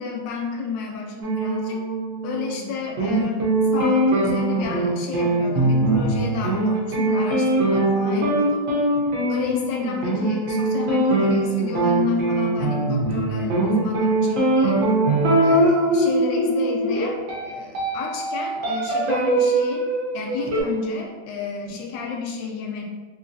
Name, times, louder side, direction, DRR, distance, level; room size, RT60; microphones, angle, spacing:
voice 1, 0.0-1.8 2.2-8.6 8.9-14.8 15.4-17.2 17.4-22.8, left 5 dB, 75° left, 0 dB, 1.1 m, -31 dB
sound 1, 1.2-2.7 3.0-20.6, right 2 dB, 70° right, 0.7 m, -22 dB
3.1 x 2.7 x 2.6 m, 1.4 s
omnidirectional pair, 2.3 m